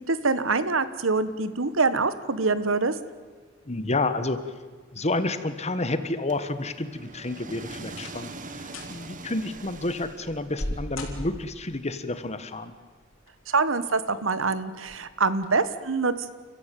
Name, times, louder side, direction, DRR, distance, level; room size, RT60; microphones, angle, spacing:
voice 1, 0.1-2.9 13.5-16.3, right 4 dB, 75° right, 14 dB, 1.3 m, -25 dB
voice 2, 3.7-4.4 4.9-12.7, left 2 dB, 35° left, 11 dB, 1.5 m, -30 dB
sound 1, 6.3-10.7, right 3 dB, 40° right, 1.4 m, -42 dB
sound 2, 7.0-7.4 7.9-8.3 8.6-9.0 9.5-11.7 12.9-13.5 14.0-14.1 14.8-15.0 15.4-15.5, left 1 dB, 80° left, 4.4 m, -37 dB
30.0 x 15.0 x 9.3 m, 1.5 s
head